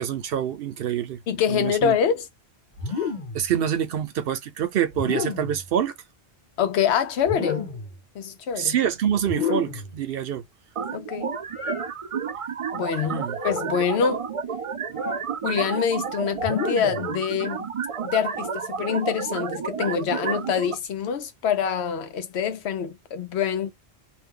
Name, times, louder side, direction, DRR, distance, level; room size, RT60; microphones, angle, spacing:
voice 1, 0.0-1.2 1.5-2.0 3.0-3.1 3.3-5.9 8.6-10.4 13.1-13.4 14.9-15.0, right 9 dB, 70° right, 0.8 m, -26 dB
voice 2, 1.3-2.3 6.6-7.7 8.1-8.7 10.9-11.4 12.7-14.3 15.4-17.7 18.0-23.7, left 7 dB, 85° left, 0.9 m, -25 dB
sound 1, 2.8-3.5 4.9-5.6 7.2-7.9 9.2-9.9 11.5-11.9 13.3-13.8 14.9-15.3 16.4-17.1, left 5 dB, 45° left, 1.1 m, -30 dB
sound 2, 10.8-20.7, right 6 dB, 50° right, 0.4 m, -31 dB
2.7 x 2.2 x 3.6 m
omnidirectional pair, 1.1 m